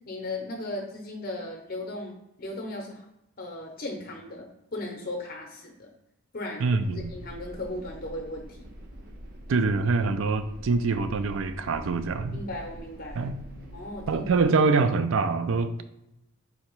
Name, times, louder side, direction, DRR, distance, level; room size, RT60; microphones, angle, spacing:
voice 1, 0.0-3.1 3.4-5.9 6.3-8.7 12.3-13.3 13.7-14.2, left 1 dB, 40° left, 1 dB, 0.7 m, -37 dB
voice 2, 6.6-7.1 9.5-12.4 13.2-13.4 14.1-15.8, right 4 dB, 60° right, 10 dB, 0.4 m, -25 dB
sound 1, 6.8-14.4, equal, 40° right, 0.8 m, -45 dB
4.2 x 2.8 x 4.5 m, 0.85 s
head